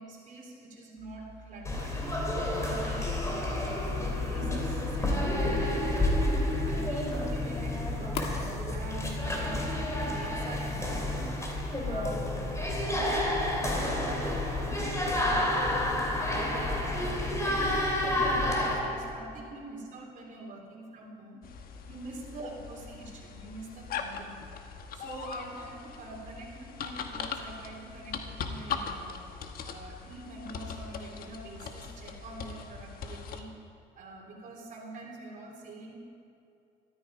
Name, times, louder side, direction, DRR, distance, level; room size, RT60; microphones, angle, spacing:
voice 1, 0.0-2.0 2.5-6.2 6.6-8.2 8.7-11.4 11.8-12.4 12.9-15.6 16.2-21.4 21.8-24.4 24.9-29.3 29.6-33.5 34.0-35.9, right 2 dB, 50° right, -1 dB, 3.4 m, -44 dB
sound 1, 1.0-10.2, left 6 dB, 80° left, 1.6 m, -41 dB
sound 2, 1.6-18.7, left 1 dB, 20° left, 2.7 m, -30 dB
sound 3, 21.4-33.4, left 6 dB, 60° left, 1.1 m, -40 dB
13.5 x 13.0 x 5.0 m, 2.6 s
cardioid pair, 110°, 17 cm